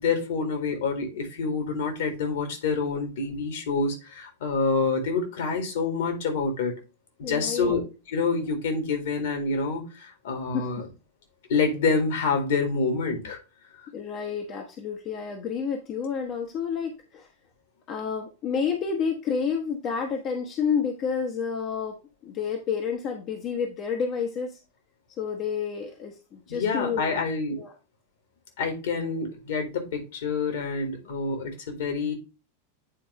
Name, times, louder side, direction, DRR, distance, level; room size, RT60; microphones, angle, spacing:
voice 1, 0.0-6.7 7.2-7.8 8.1-10.9 11.5-13.4 26.5-27.6 28.6-32.1, left 4 dB, 55° left, 4 dB, 2.0 m, -27 dB
voice 2, 7.2-7.7 10.5-10.7 13.9-17.3 17.9-22.0 22.2-24.6 25.2-27.1 27.5-27.7, left 6 dB, 35° left, 2 dB, 1.1 m, -30 dB
9.0 x 4.5 x 3.2 m, 0.29 s
figure-of-eight pair, 90°, 0 cm